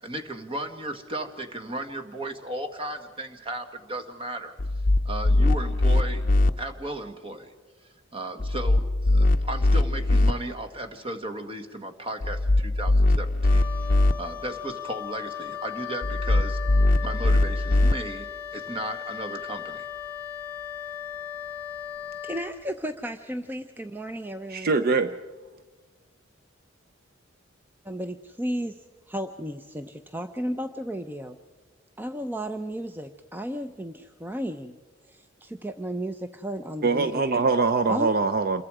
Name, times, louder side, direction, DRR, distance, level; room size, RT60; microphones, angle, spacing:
voice 1, 0.0-4.5 5.1-6.3 6.6-7.5 8.1-16.6 17.0-19.9, right 1 dB, 30° right, 6 dB, 1.7 m, -35 dB
sound 1, 4.6-6.5 8.4-10.3 12.2-14.1 16.0-17.9, left 2 dB, 45° left, 0.6 m, -21 dB
Wind instrument woodwind instrument, 13.4-22.5, left 10 dB, 10° left, 3.8 m, -37 dB
voice 2, 22.2-24.7 27.8-28.8 29.1-31.4 32.0-34.8 35.1-37.4 37.9-38.2, equal, 10° right, 8 dB, 0.6 m, -34 dB
voice 3, 24.5-25.1 36.8-38.6, right 4 dB, 50° right, 9 dB, 0.6 m, -23 dB
27.5 x 22.5 x 4.9 m, 1.3 s
head